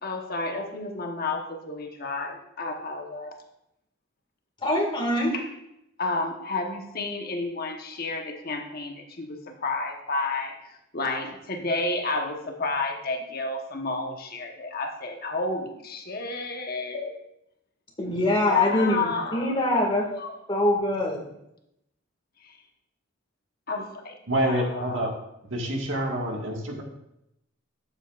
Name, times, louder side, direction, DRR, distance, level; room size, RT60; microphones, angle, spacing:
voice 1, 0.0-3.3 5.3-5.5 6.0-17.2 18.5-20.4 22.4-22.6 23.7-25.1, left 3 dB, 50° left, 3 dB, 1.1 m, -31 dB
voice 2, 4.6-5.3 18.0-20.0 20.5-21.2, left 1 dB, 25° left, 0 dB, 2.0 m, -24 dB
voice 3, 24.3-25.1 25.5-26.8, right 1 dB, 75° right, 1 dB, 1.7 m, -27 dB
12.0 x 8.1 x 2.5 m, 0.81 s
head